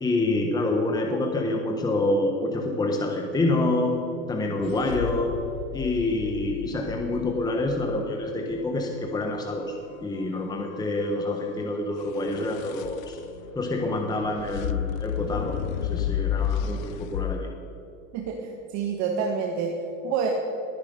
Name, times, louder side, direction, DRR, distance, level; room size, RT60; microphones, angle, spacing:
voice 1, 0.0-4.0 4.3-5.3 5.7-13.2 13.5-15.6 15.8-17.5, left 2 dB, 10° left, 2 dB, 1.2 m, -27 dB
sound 1, 4.6-8.7 12.0-17.4, left 10 dB, 80° left, 0.8 m, -32 dB
voice 2, 18.1-19.7 20.0-20.3, right 6 dB, 45° right, 2 dB, 1.7 m, -28 dB
20.0 x 10.5 x 5.3 m, 2.9 s
supercardioid pair, 140°, 40 cm